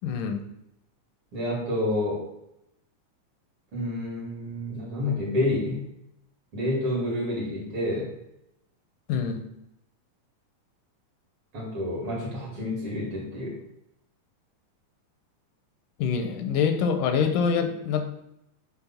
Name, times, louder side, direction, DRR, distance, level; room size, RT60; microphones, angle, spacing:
voice 1, 0.0-0.4 9.1-9.4 16.0-18.1, left 6 dB, 85° left, 6 dB, 2.3 m, -25 dB
voice 2, 1.3-2.2 3.7-5.9 6.5-8.1 11.5-13.6, left 1 dB, 45° right, -3 dB, 2.7 m, -29 dB
7.0 x 3.6 x 5.7 m, 0.82 s
omnidirectional pair, 3.7 m